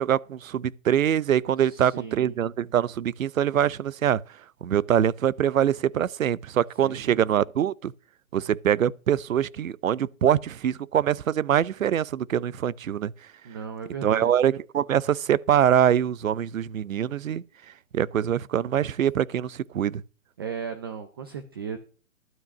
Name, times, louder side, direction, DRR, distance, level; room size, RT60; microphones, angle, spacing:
voice 1, 0.0-4.2 4.6-7.9 8.3-13.1 14.0-17.4 17.9-20.0, right 10 dB, 80° right, 0.7 m, -24 dB
voice 2, 1.6-2.3 6.8-7.2 13.4-14.3 20.4-21.8, right 6 dB, 20° right, 0.5 m, -36 dB
12.5 x 5.7 x 7.1 m
hypercardioid pair, 155°, 39 cm